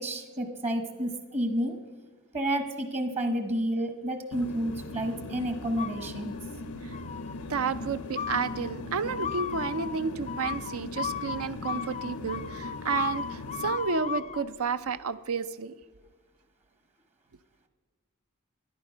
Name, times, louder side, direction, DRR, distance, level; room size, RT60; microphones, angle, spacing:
voice 1, 0.0-1.8 2.3-6.3, right 1 dB, 30° right, 7 dB, 1.0 m, -30 dB
sound 1, 4.3-13.8, left 2 dB, 90° left, 0.7 m, -39 dB
sound 2, 5.8-6.5 6.9-7.5 8.2-14.5, left 7 dB, 30° left, 0.5 m, -36 dB
voice 2, 7.5-15.7, right 5 dB, 75° right, 14 dB, 0.6 m, -31 dB
13.0 x 10.5 x 5.6 m, 1.3 s
head